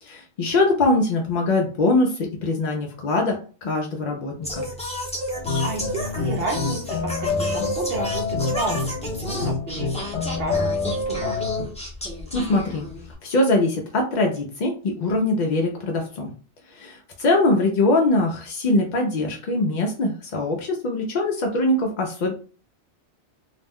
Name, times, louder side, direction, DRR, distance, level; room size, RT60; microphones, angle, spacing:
voice 1, 0.0-4.7 12.3-12.9 13.2-16.3 16.7-22.3, left 2 dB, 60° left, 1 dB, 0.5 m, -22 dB
Singing, 4.4-13.1, equal, 10° left, 0.5 m, -32 dB
sound 1, 5.3-11.6, left 3 dB, 75° left, 0.9 m, -27 dB
voice 2, 5.6-9.9 10.3-11.4, right 2 dB, 60° right, -1 dB, 0.7 m, -32 dB
2.4 x 2.1 x 3.4 m, 0.37 s
omnidirectional pair, 1.2 m